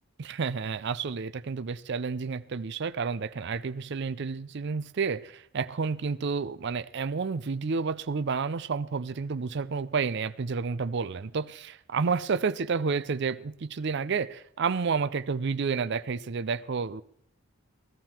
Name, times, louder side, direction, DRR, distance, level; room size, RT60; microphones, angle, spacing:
voice 1, 0.2-17.0, right 5 dB, 55° right, 0.5 m, -30 dB
17.0 x 13.0 x 4.4 m
head